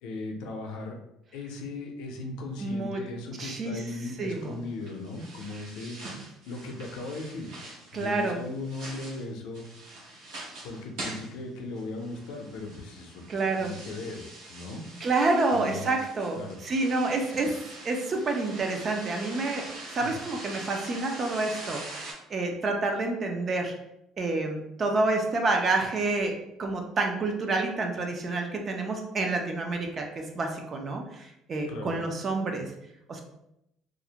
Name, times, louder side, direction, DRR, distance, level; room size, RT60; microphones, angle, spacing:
voice 1, 0.0-1.0 1.3-6.0 6.5-7.5 7.9-9.7 10.6-13.2 13.6-14.2 14.5-14.8 15.5-15.9 16.4-16.6 20.0-20.2 31.7-32.0, left 2 dB, 85° left, 3 dB, 0.5 m, -37 dB
voice 2, 2.6-3.0 3.4-3.8 4.2-4.5 7.9-8.4 13.3-13.7 15.0-19.7 19.9-23.7 24.2-32.7 33.1-33.2, right 3 dB, 25° right, 3 dB, 0.3 m, -28 dB
sound 1, 4.2-22.1, right 2 dB, 70° right, 0.9 m, -44 dB
2.4 x 2.0 x 2.8 m, 0.82 s
cardioid pair, 170°, 0 cm